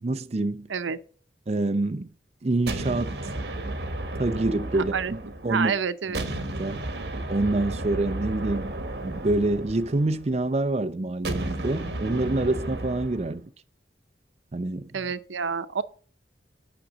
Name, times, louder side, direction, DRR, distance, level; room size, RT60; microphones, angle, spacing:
voice 1, 0.0-0.7 1.5-2.1 2.4-3.3 4.2-5.7 6.1-6.2 6.5-6.8 7.3-8.7 9.0-13.4 14.5-14.9, right 2 dB, 35° right, 0.5 m, -26 dB
sound 1, 2.7-5.7 6.1-10.4 11.2-13.4, right 1 dB, 60° right, 1.3 m, -33 dB
voice 2, 4.7-5.1 5.5-6.2 14.9-15.8, right 6 dB, 90° right, 0.7 m, -28 dB
8.9 x 6.0 x 5.0 m
head